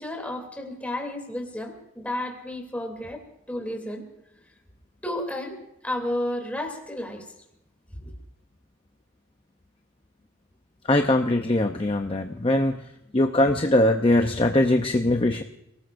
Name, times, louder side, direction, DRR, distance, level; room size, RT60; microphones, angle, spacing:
voice 1, 0.0-3.2 3.5-4.0 5.0-5.6 5.8-7.3 8.0-8.1, left 1 dB, 5° left, 3 dB, 2.9 m, -32 dB
voice 2, 10.9-15.4, left 1 dB, 25° left, 5 dB, 0.7 m, -22 dB
29.0 x 19.0 x 2.6 m, 0.84 s
head